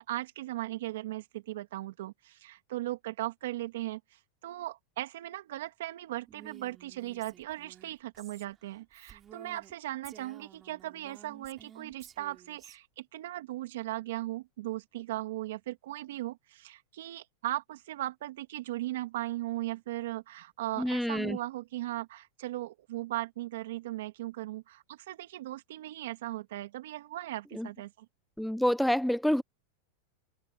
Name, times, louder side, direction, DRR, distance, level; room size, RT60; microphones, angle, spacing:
voice 1, 0.0-28.1, right 16 dB, 75° right, 2.4 m, -38 dB
Female speech woman speaking, 6.3-9.7 10.0-12.8, right 9 dB, 20° right, 4.5 m, -53 dB
voice 2, 20.8-21.4 27.5-27.7 28.4-29.4, equal, ahead, 0.5 m, -27 dB
supercardioid pair, 155°, 0 cm